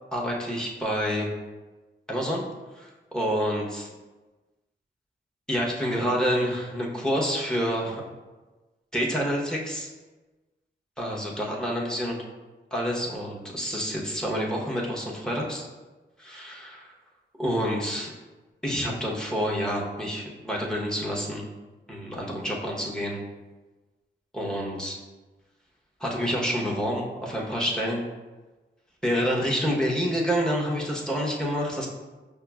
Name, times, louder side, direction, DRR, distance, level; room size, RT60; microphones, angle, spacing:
voice 1, 0.1-1.3 2.1-2.5 2.7-3.9 5.5-8.0 8.9-9.9 11.0-12.2 12.7-15.6 16.2-16.9 17.4-18.1 18.6-21.4 21.9-23.2 24.3-25.0 26.0-28.0 29.0-31.9, equal, 5° left, -3 dB, 0.9 m, -28 dB
5.5 x 2.0 x 2.3 m, 1.2 s
cardioid pair, 50°, 19 cm